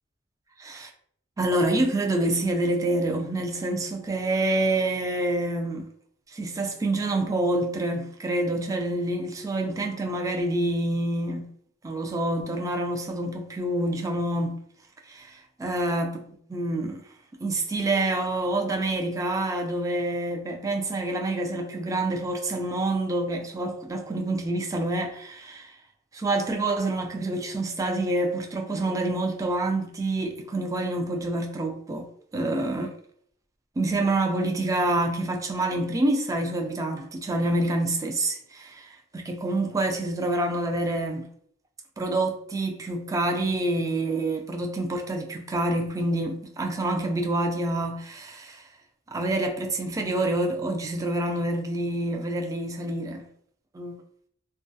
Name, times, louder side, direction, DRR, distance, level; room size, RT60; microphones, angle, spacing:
voice 1, 0.6-0.9 1.4-5.9 6.3-11.5 11.8-14.6 15.1-17.0 17.4-25.7 26.1-32.1 32.3-32.9 33.8-41.3 42.0-48.7 49.1-53.3 53.7-54.0, right 2 dB, 20° right, 0.3 m, -27 dB
2.3 x 2.2 x 2.6 m
head